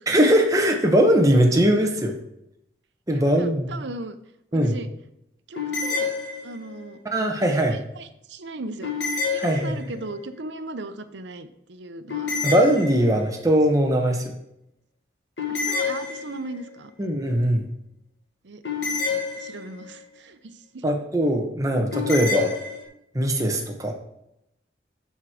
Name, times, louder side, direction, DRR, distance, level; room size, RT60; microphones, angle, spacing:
voice 1, 0.1-2.1 3.1-3.7 4.5-4.8 7.1-7.8 9.4-9.8 12.4-14.3 17.0-17.7 20.8-22.6 23.1-23.9, equal, 20° right, 2 dB, 1.1 m, -20 dB
voice 2, 3.1-4.2 4.5-4.9 5.5-6.1 6.4-7.0 7.6-8.9 9.3-12.3 15.5-16.9 18.4-18.6 19.1-20.9, right 2 dB, 80° right, 10 dB, 0.7 m, -37 dB
sound 1, 5.6-6.9 8.8-10.1 12.1-13.4 15.4-16.7 18.6-19.9 21.9-22.8, left 5 dB, 80° left, 2.2 m, -28 dB
11.0 x 4.6 x 5.0 m, 0.81 s
head